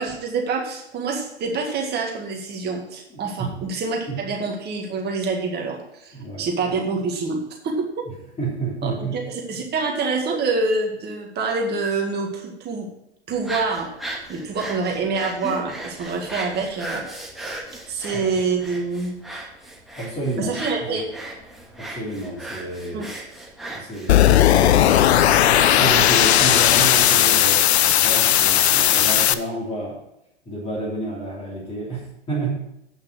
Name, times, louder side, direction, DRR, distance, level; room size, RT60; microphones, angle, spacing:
voice 1, 0.0-7.4 7.6-8.0 8.8-12.9 13.3-13.9 14.3-17.0 17.4-17.6 17.9-19.1 20.4-21.0 22.9-23.1, right 4 dB, 30° right, 1 dB, 2.0 m, -26 dB
voice 2, 3.1-3.7 4.1-4.3 6.1-6.7 8.1-9.2 18.1-18.2 19.9-20.5 20.8-21.0 21.8-23.1 23.7-25.2 25.7-30.0 30.4-32.5, right 2 dB, 20° left, -6 dB, 3.3 m, -30 dB
sound 1, 13.3-27.0, right 1 dB, ahead, 1.7 m, -37 dB
sound 2, 24.1-29.3, left 11 dB, 75° left, 0.6 m, -16 dB
8.8 x 5.9 x 6.2 m, 0.80 s
hypercardioid pair, 105°, 33 cm